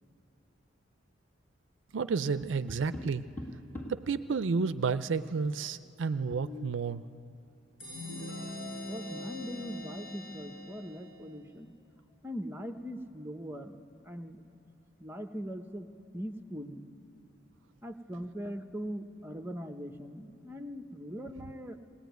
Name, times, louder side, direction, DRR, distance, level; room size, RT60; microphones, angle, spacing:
voice 1, 1.9-3.2 3.9-7.0, right 5 dB, 75° right, 13 dB, 0.5 m, -31 dB
Tap, 2.4-4.1 6.1-6.9, left 2 dB, 10° left, 1.7 m, -44 dB
sound 1, 7.8-11.4, left 1 dB, 80° left, 7.7 m, -42 dB
voice 2, 8.9-11.7 12.2-13.8 14.0-14.4 15.0-15.9 16.1-16.8 17.8-21.8, equal, 10° right, 7 dB, 0.8 m, -41 dB
19.5 x 19.0 x 9.3 m, 2.6 s
head